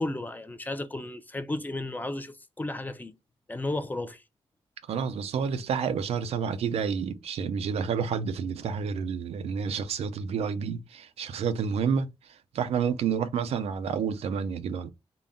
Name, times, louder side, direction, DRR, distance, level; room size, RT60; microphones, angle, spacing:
voice 1, 0.0-3.1 3.5-4.2, left 2 dB, 15° left, 0.5 m, -33 dB
voice 2, 4.9-12.1 12.5-14.9, right 6 dB, 90° right, 0.5 m, -29 dB
3.8 x 2.2 x 3.6 m
cardioid pair, 100°, 10 cm